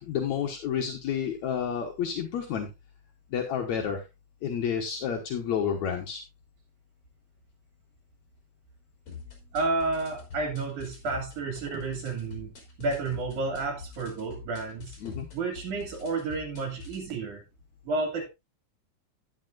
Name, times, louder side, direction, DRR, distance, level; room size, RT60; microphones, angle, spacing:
voice 1, 0.0-2.7 3.3-4.0 4.4-6.2 15.0-15.3, left 8 dB, 70° left, 2 dB, 2.5 m, -30 dB
sound 1, 9.1-17.1, left 4 dB, 50° left, 4.7 m, -45 dB
voice 2, 9.5-12.5 12.8-15.0 15.3-17.4 17.8-18.3, right 3 dB, 80° right, 2 dB, 4.0 m, -31 dB
12.5 x 10.0 x 2.5 m, 0.23 s
omnidirectional pair, 3.4 m